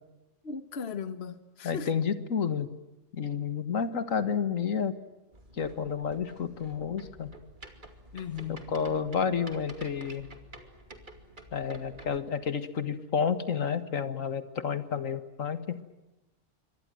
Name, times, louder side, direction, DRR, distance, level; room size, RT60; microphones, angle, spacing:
voice 1, 0.4-1.9 8.1-8.6, left 6 dB, 55° left, 12 dB, 1.5 m, -37 dB
voice 2, 1.6-2.7 3.1-5.0 5.6-7.3 8.5-10.3 11.5-15.8, left 6 dB, 80° left, 12 dB, 2.0 m, -30 dB
sound 1, 5.3-12.2, right 1 dB, 40° right, 2.8 m, -50 dB
28.0 x 25.0 x 7.7 m, 1.0 s
omnidirectional pair, 1.3 m